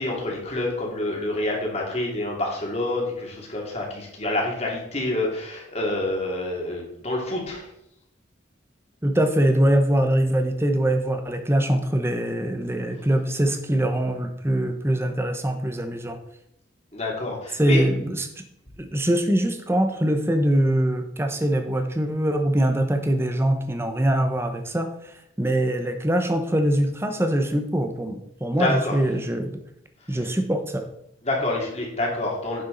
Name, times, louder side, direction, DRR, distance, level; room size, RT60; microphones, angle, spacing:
voice 1, 0.0-7.7 16.9-17.8 28.5-29.0 31.2-32.6, left 2 dB, 35° left, -1 dB, 2.6 m, -27 dB
voice 2, 9.0-16.2 17.5-18.3 18.8-24.9 25.4-29.6 30.1-30.8, right 1 dB, 15° right, 6 dB, 0.9 m, -23 dB
10.0 x 7.2 x 3.9 m, 0.77 s
head